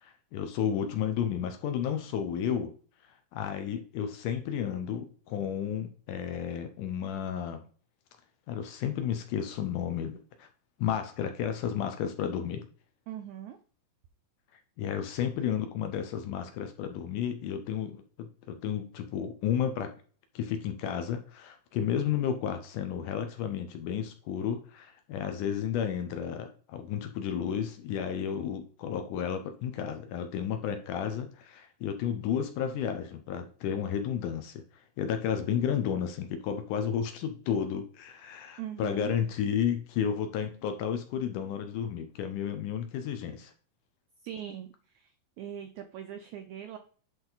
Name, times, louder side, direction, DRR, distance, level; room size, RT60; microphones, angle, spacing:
voice 1, 0.0-2.7 3.3-7.6 8.5-10.5 10.8-12.7 14.8-19.9 20.4-34.6 35.0-43.5, left 8 dB, 75° left, 7 dB, 2.1 m, -32 dB
voice 2, 13.1-13.6 38.6-39.2 44.2-45.1 45.4-46.8, right 10 dB, 85° right, 7 dB, 1.6 m, -41 dB
10.5 x 3.6 x 3.9 m, 0.42 s
omnidirectional pair, 4.1 m